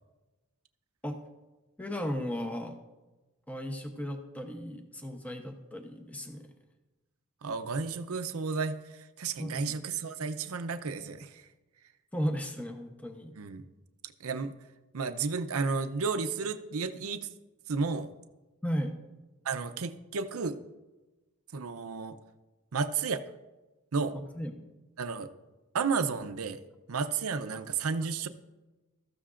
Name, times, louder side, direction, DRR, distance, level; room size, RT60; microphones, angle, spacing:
voice 1, 1.8-2.8 3.5-6.5 9.4-9.8 12.1-13.3 18.6-19.0 24.4-24.7, equal, 5° left, 4 dB, 0.8 m, -35 dB
voice 2, 7.4-11.4 13.4-13.6 14.2-14.5 14.9-17.3 17.7-18.1 19.4-20.6 21.5-22.2 22.7-23.2 23.9-24.2 25.0-25.3 25.7-26.6 26.9-28.3, right 5 dB, 80° right, 9 dB, 0.6 m, -32 dB
15.5 x 13.5 x 2.5 m, 1.1 s
head